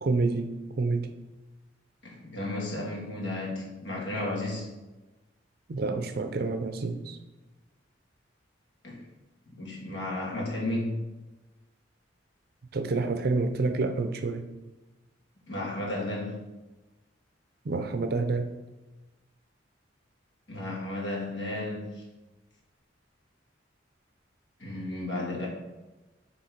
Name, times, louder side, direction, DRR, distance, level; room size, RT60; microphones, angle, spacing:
voice 1, 0.0-1.1 5.7-7.2 12.7-14.4 17.6-18.5, right 3 dB, 50° right, 8 dB, 0.5 m, -28 dB
voice 2, 2.0-4.7 8.8-9.0 9.5-11.0 15.5-16.4 20.5-22.0 24.6-25.5, left 1 dB, 65° left, -3 dB, 1.7 m, -33 dB
6.4 x 3.3 x 4.6 m, 1.1 s
head